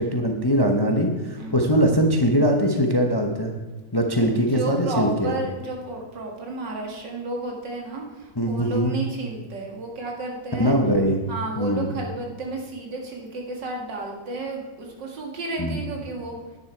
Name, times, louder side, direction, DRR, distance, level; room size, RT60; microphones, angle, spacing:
voice 1, 0.0-3.5 3.9-5.3 8.4-8.9 10.5-11.2 11.6-11.9 15.6-15.8, equal, 20° left, 3 dB, 0.6 m, -21 dB
voice 2, 4.2-10.7 11.3-16.6, right 2 dB, 90° right, 0 dB, 2.6 m, -32 dB
10.0 x 9.8 x 4.5 m, 1.2 s
omnidirectional pair, 1.9 m